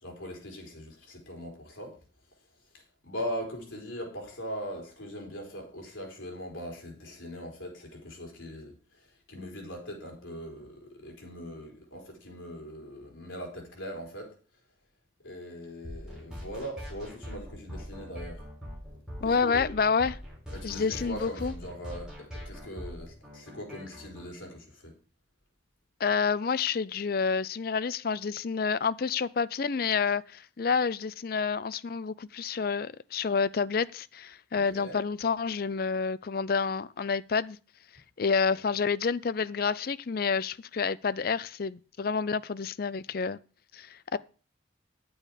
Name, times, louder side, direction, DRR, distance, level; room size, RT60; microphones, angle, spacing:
voice 1, 0.0-2.0 2.7-14.3 15.2-18.4 19.2-19.7 20.5-24.9 34.5-35.0 38.5-38.6, equal, 85° left, 4.3 m, -41 dB
sound 1, 15.8-24.2, equal, 5° right, 4.0 m, -42 dB
voice 2, 19.2-20.2 20.6-21.5 26.0-37.6 38.2-43.4 43.7-44.2, left 5 dB, 50° left, 0.4 m, -29 dB
10.0 x 8.6 x 4.9 m
head